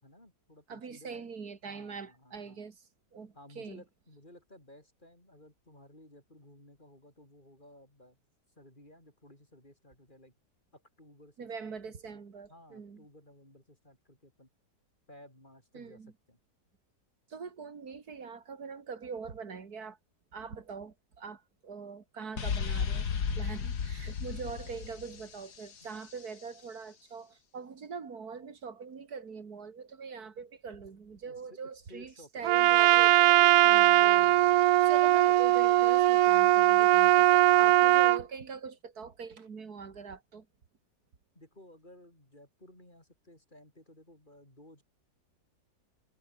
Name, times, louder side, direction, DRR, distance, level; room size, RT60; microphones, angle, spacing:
voice 1, 0.0-1.3 1.6-2.6 3.3-8.2 8.6-10.3 10.7-12.2 12.5-14.5 15.1-16.4 24.4-24.6 25.8-25.9 31.3-33.1 34.1-34.6 37.4-38.1 41.3-44.8, left 1 dB, 25° left, 6.3 m, -56 dB
voice 2, 0.7-2.8 3.1-3.8 11.4-13.0 15.7-16.1 17.3-20.0 20.3-40.5, right 5 dB, 55° right, 2.6 m, -43 dB
sound 1, 22.4-26.1, left 6 dB, 65° left, 2.4 m, -34 dB
Trumpet, 32.4-38.2, right 15 dB, 70° right, 0.9 m, -21 dB
omnidirectional pair, 1.9 m